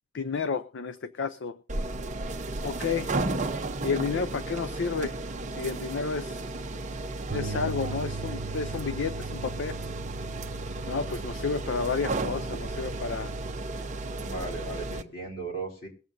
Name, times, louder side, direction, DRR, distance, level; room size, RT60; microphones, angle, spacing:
voice 1, 0.1-1.6 2.6-3.1 3.8-5.1 5.5-6.5 7.3-9.8 10.9-13.3, left 5 dB, 60° left, 12 dB, 0.5 m, -31 dB
sound 1, 1.7-15.0, right 2 dB, 35° right, 0.9 m, -34 dB
sound 2, 7.3-13.6, right 4 dB, 85° right, 0.9 m, -40 dB
voice 2, 14.1-15.9, right 3 dB, 45° left, -3 dB, 4.0 m, -37 dB
22.5 x 7.6 x 2.6 m, 0.38 s
head